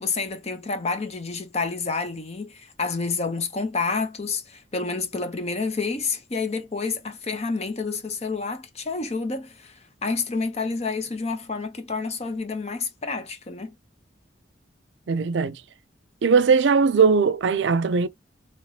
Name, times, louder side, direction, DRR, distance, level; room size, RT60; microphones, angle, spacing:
voice 1, 0.0-13.7, left 4 dB, 35° left, 0.8 m, -29 dB
voice 2, 15.1-15.6 16.2-18.1, right 5 dB, 80° right, 0.4 m, -19 dB
3.3 x 3.0 x 2.7 m
head